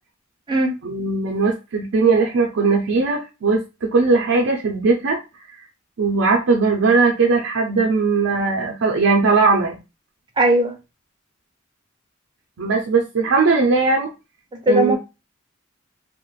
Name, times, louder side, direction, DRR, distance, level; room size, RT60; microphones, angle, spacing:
voice 1, 0.8-5.2 5.5-5.6 6.0-9.8 12.6-14.1 14.7-15.0, right 4 dB, 75° right, 0.5 m, -19 dB
voice 2, 10.4-10.8 14.7-15.0, equal, 25° right, 0.5 m, -17 dB
2.4 x 2.1 x 3.1 m
head